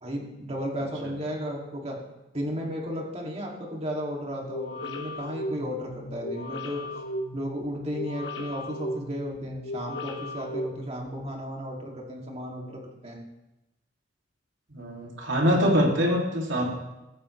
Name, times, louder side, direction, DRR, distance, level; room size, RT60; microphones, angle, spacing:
voice 1, 0.0-2.0 2.3-6.8 7.3-13.2, equal, 35° right, -1 dB, 2.7 m, -34 dB
sound 1, 4.4-11.3, left 1 dB, 70° left, 1.5 m, -36 dB
voice 2, 14.7-16.7, equal, 80° right, -1 dB, 2.9 m, -24 dB
15.0 x 14.5 x 3.3 m, 0.98 s
head